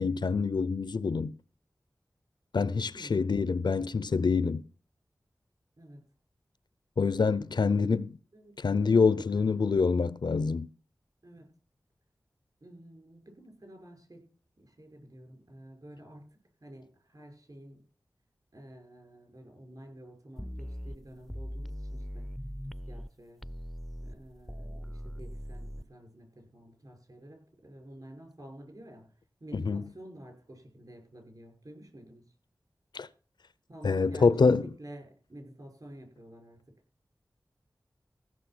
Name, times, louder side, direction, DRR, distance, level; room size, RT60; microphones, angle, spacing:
voice 1, 0.0-1.3 2.5-4.6 7.0-8.2 8.6-10.7 29.5-29.8 32.9-33.1 33.8-34.7, left 4 dB, 75° left, 0.6 m, -26 dB
voice 2, 2.9-3.4 5.8-6.0 8.3-8.5 8.9-9.5 11.2-11.5 12.6-14.3 14.6-16.2 16.6-17.8 18.5-22.3 22.9-23.4 24.0-29.1 29.4-32.3 33.7-36.7, right 1 dB, 60° right, 6.1 m, -50 dB
sound 1, 20.4-23.1 23.4-25.8, equal, ahead, 0.5 m, -40 dB
16.0 x 6.4 x 6.1 m
wide cardioid pair, 45°, 8 cm